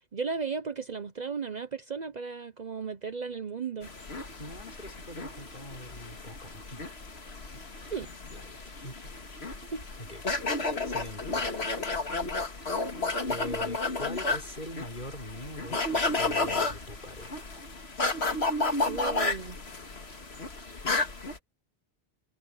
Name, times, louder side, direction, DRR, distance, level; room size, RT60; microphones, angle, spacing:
voice 1, 0.0-3.9 7.9-8.1 9.7-9.8 18.9-19.6, right 5 dB, 45° right, 0.8 m, -35 dB
sound 1, 3.8-21.4, left 3 dB, 80° left, 2.3 m, -32 dB
voice 2, 4.4-6.9 7.5-7.9 8.3-9.2 10.0-10.2 10.5-11.5 13.2-17.6, equal, 50° left, 6.0 m, -43 dB
omnidirectional pair, 1.1 m